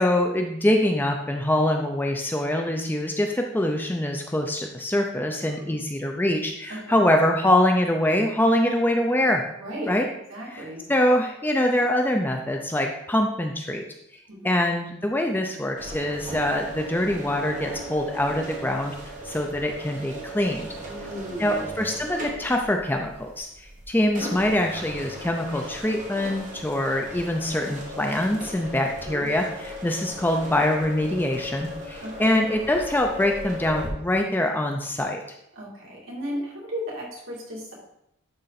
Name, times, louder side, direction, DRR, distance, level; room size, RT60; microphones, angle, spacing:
voice 1, 0.0-9.4 9.9-10.0 10.5-10.6 10.9-13.9 14.4-18.9 19.2-20.7 21.4-35.2, left 1 dB, 10° left, 3 dB, 0.4 m, -24 dB
voice 2, 6.7-7.0 9.6-9.9 10.3-10.8 14.3-14.6 20.8-21.6 28.8-29.3 32.0-32.3 35.5-37.7, equal, 65° right, -4 dB, 2.7 m, -35 dB
sound 1, 15.8-33.9, equal, 35° right, 1.6 m, -37 dB
10.5 x 3.8 x 4.1 m, 0.80 s
head